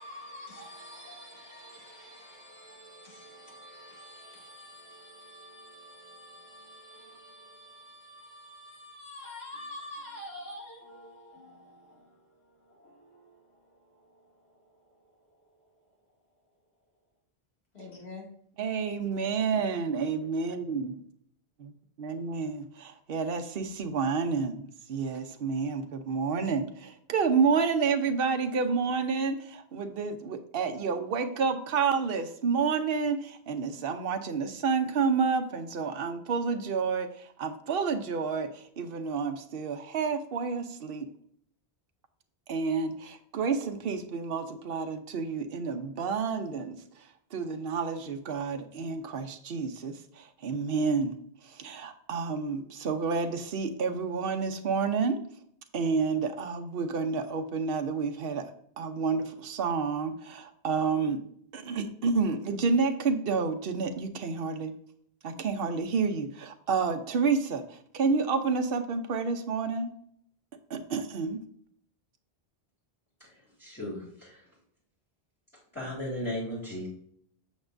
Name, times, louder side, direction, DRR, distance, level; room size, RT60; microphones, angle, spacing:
voice 1, 0.0-15.9 17.7-18.3, left 1 dB, 90° left, 2.6 m, -48 dB
voice 2, 18.6-20.9 21.6-21.7 22.0-41.1 42.5-51.2 51.4-55.2 55.7-58.5 58.8-61.2 61.5-64.7 65.2-69.9 70.7-71.4, right 5 dB, 70° right, 1.0 m, -29 dB
voice 3, 73.2-74.4 75.7-76.9, left 1 dB, 15° left, 2.9 m, -36 dB
8.3 x 7.1 x 2.6 m
omnidirectional pair, 1.0 m